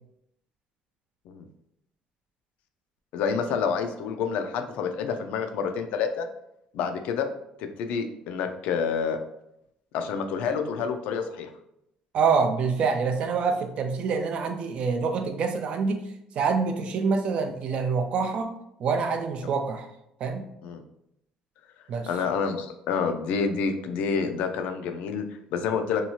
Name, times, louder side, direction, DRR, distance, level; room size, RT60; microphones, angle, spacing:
voice 1, 3.1-6.3 6.7-7.3 7.6-9.2 9.9-11.5 20.6-20.8 22.1-26.0, left 6 dB, 80° left, 7 dB, 0.3 m, -28 dB
voice 2, 12.1-16.1 16.4-18.5 18.8-19.9 20.2-20.5 21.9-22.1, right 5 dB, 55° right, 6 dB, 0.4 m, -26 dB
2.8 x 2.3 x 2.9 m, 0.80 s
cardioid pair, 120°, 2 cm